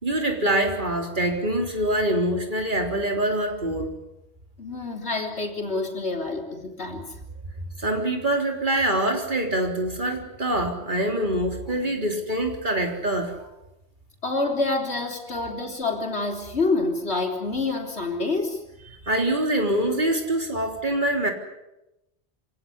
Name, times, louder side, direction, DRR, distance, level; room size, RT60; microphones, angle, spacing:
voice 1, 0.0-3.9 7.8-13.3 15.3-15.5 18.8-21.3, right 1 dB, 50° right, 3 dB, 3.9 m, -25 dB
voice 2, 4.6-7.1 14.2-18.6, left 3 dB, 75° left, 3 dB, 4.0 m, -27 dB
26.0 x 18.0 x 9.7 m, 0.90 s
omnidirectional pair, 1.1 m